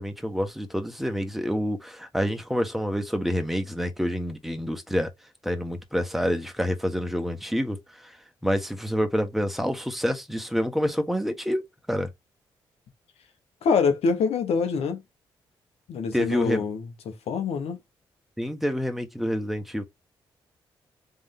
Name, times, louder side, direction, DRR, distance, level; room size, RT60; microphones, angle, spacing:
voice 1, 0.0-5.1 5.4-8.2 8.4-11.6 11.9-12.1 16.1-16.7 18.4-19.8, equal, ahead, 1.5 m, -27 dB
voice 2, 13.6-15.0 15.9-17.8, left 5 dB, 70° left, 1.0 m, -25 dB
3.7 x 3.3 x 3.6 m
hypercardioid pair, 45°, 11 cm